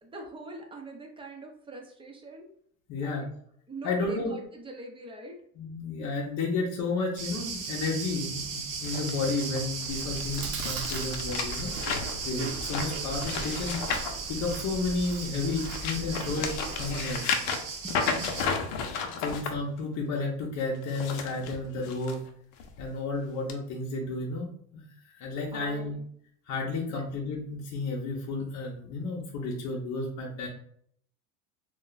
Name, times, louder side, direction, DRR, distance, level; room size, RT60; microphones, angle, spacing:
voice 1, 0.0-2.5 3.0-3.3 3.7-5.4 17.8-19.2 25.5-25.8 26.9-27.0, right 1 dB, 15° right, 2 dB, 0.6 m, -43 dB
voice 2, 2.9-3.3 3.8-4.3 5.6-11.7 12.2-13.8 14.3-17.4 18.9-22.2 22.8-24.5 24.7-24.8 25.1-25.9 26.5-30.5, left 3 dB, 40° left, -1 dB, 0.7 m, -32 dB
sound 1, 7.2-18.4, right 5 dB, 50° right, 0.7 m, -37 dB
sound 2, 8.8-15.0 15.4-19.5 20.7-22.2 22.6-22.8 23.5-23.6, left 5 dB, 80° left, 0.7 m, -33 dB
Chewing mastication, 9.9-17.2, right 3 dB, 75° right, 0.8 m, -40 dB
2.5 x 2.2 x 3.8 m, 0.64 s
supercardioid pair, 120°, 42 cm